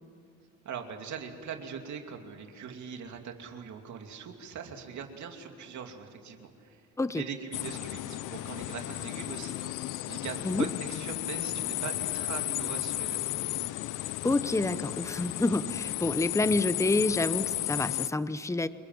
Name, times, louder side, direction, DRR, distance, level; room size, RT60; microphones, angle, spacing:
voice 1, 0.6-6.9 7.1-13.4, right 6 dB, 70° right, 4 dB, 2.9 m, -41 dB
sound 1, 7.5-18.1, left 16 dB, 85° left, 0.6 m, -34 dB
voice 2, 14.2-18.7, left 2 dB, 10° left, 13 dB, 0.9 m, -28 dB
28.5 x 21.0 x 7.7 m, 2.4 s
cardioid pair, 90°, 30 cm